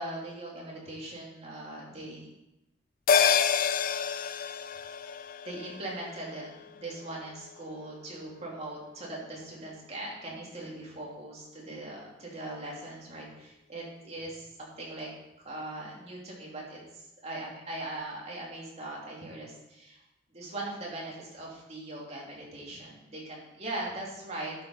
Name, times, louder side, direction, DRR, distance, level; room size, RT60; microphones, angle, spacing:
voice 1, 0.0-2.3 5.4-15.1 15.4-20.0 20.3-24.5, right 1 dB, 35° right, -3 dB, 2.9 m, -40 dB
sound 1, 3.1-7.8 8.1-8.2, left 6 dB, 45° left, 0.4 m, -29 dB
11.5 x 5.7 x 5.4 m, 0.92 s
head